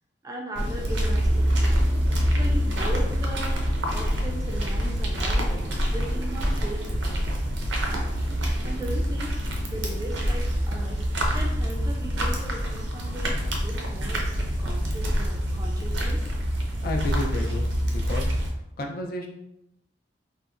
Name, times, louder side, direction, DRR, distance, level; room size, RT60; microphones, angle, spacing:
voice 1, 0.2-1.8 2.3-3.6 3.9-7.3 7.7-8.0 8.6-9.3 9.7-11.1 11.3-14.2 14.6-16.2, right 1 dB, 20° right, 0 dB, 0.3 m, -38 dB
sound 1, 0.6-18.5, equal, 80° right, 0.6 m, -26 dB
voice 2, 16.8-18.3 18.8-19.3, left 1 dB, 50° left, 2 dB, 0.4 m, -31 dB
3.7 x 2.1 x 2.3 m, 0.83 s
head